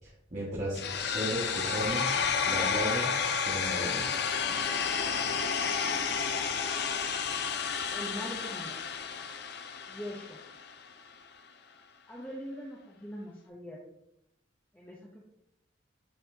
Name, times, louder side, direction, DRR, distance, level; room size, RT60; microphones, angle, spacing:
voice 1, 0.0-3.1 3.4-4.2, equal, 40° right, -9 dB, 1.7 m, -35 dB
sound 1, 0.8-10.7, left 6 dB, 55° left, 0.6 m, -31 dB
voice 2, 7.9-8.8 9.9-10.4 12.1-13.8 14.7-15.3, equal, 10° left, -4 dB, 0.8 m, -42 dB
10.0 x 4.2 x 2.8 m, 0.79 s
head